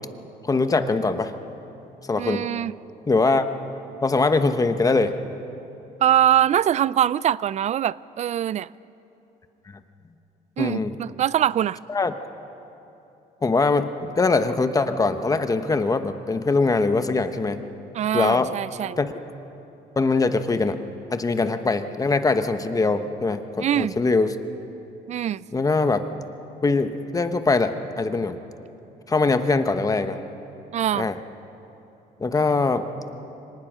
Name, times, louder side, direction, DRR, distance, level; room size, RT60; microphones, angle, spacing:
voice 1, 0.4-1.3 2.0-2.5 3.1-3.5 4.0-5.2 10.6-10.9 11.9-12.1 13.4-17.6 18.1-18.5 19.0-19.1 20.0-20.8 21.1-24.3 25.5-26.0 26.6-28.4 29.1-30.2 30.9-31.2 32.2-32.8, left 3 dB, 20° left, 9 dB, 1.1 m, -22 dB
voice 2, 2.2-2.7 6.0-8.7 10.6-11.8 17.9-19.0 23.6-23.9 25.1-25.4 30.7-31.1, right 11 dB, 45° right, 20 dB, 0.4 m, -23 dB
24.5 x 18.5 x 6.2 m, 2.9 s
cardioid pair, 110°, 17 cm